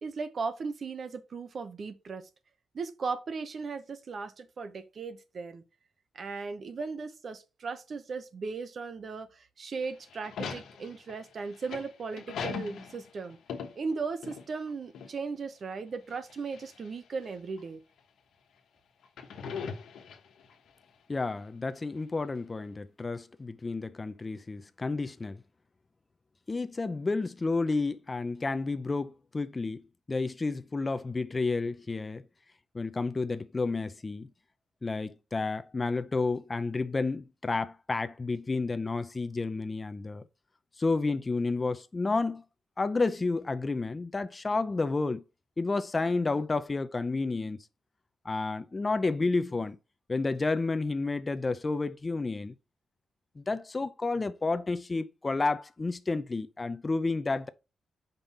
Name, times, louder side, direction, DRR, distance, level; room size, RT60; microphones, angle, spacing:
voice 1, 0.0-2.3 2.7-5.6 6.1-13.4 13.8-17.8, right 4 dB, 55° right, 0.9 m, -37 dB
sound 1, 9.8-14.7 14.9-15.1 16.1-16.9 17.6-17.7 19.0-20.5, left 6 dB, 90° left, 1.2 m, -40 dB
voice 2, 21.1-25.4 26.5-32.2 32.7-34.3 34.8-40.2 40.8-42.4 42.8-45.2 45.6-47.6 48.2-49.8 50.1-52.5 53.4-57.5, left 3 dB, 30° left, 0.5 m, -31 dB
5.6 x 5.3 x 4.3 m
cardioid pair, 90°, 0 cm